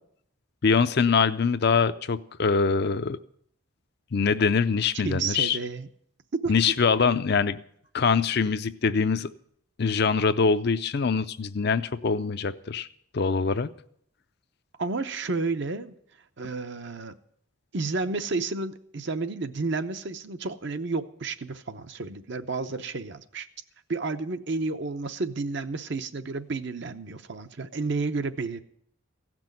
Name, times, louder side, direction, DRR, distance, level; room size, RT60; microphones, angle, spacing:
voice 1, 0.6-3.2 4.1-5.6 6.5-7.6 7.9-9.3 9.8-12.9 13.1-13.7, left 5 dB, 50° left, 12 dB, 0.5 m, -23 dB
voice 2, 5.0-5.9 6.4-6.6 14.8-16.0 16.4-17.1 17.7-23.5 23.9-28.6, right 3 dB, 55° right, 10 dB, 0.7 m, -31 dB
16.0 x 6.1 x 9.0 m, 0.68 s
head